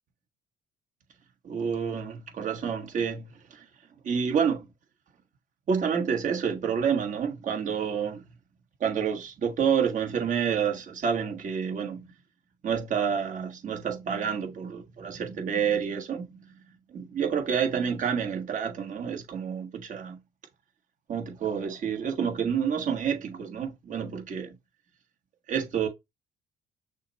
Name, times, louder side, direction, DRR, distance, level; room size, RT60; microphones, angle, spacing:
voice 1, 1.4-3.6 4.0-4.7 5.7-8.4 8.8-12.1 12.6-16.2 16.9-20.2 21.1-24.5 25.5-25.9, right 7 dB, 50° right, 1.3 m, -29 dB
6.2 x 2.1 x 4.0 m
cardioid pair, 110°, 17 cm